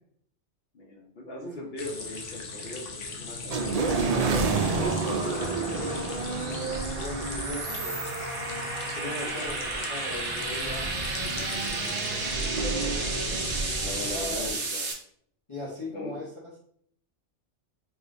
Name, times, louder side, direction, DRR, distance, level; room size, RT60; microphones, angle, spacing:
voice 1, 0.7-3.9 4.7-6.2 12.4-13.1 13.8-14.9 15.9-16.2, left 2 dB, 60° left, 0 dB, 1.0 m, -40 dB
sound 1, 1.8-14.2, left 5 dB, 90° left, 1.0 m, -39 dB
sound 2, 3.0-14.9, right 3 dB, 55° right, 1.1 m, -34 dB
sound 3, 3.5-14.5, right 4 dB, 75° right, 0.3 m, -31 dB
voice 2, 4.7-5.1 6.9-8.0 8.9-11.9 14.1-14.5 15.5-16.3, left 2 dB, 30° left, -7 dB, 0.8 m, -39 dB
4.9 x 2.6 x 2.6 m, 0.64 s
omnidirectional pair, 1.2 m